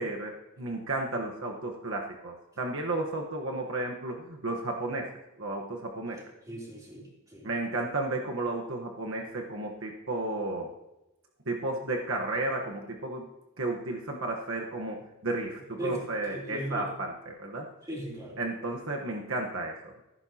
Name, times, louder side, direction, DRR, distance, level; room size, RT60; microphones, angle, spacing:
voice 1, 0.0-5.1 5.4-6.2 7.4-10.7 11.5-13.3 13.6-17.7 18.4-19.9, right 2 dB, 65° right, 1 dB, 1.3 m, -33 dB
voice 2, 6.1-7.5 15.8-16.9 17.9-18.4, equal, 15° right, -3 dB, 3.3 m, -38 dB
15.0 x 15.0 x 2.9 m, 0.95 s
head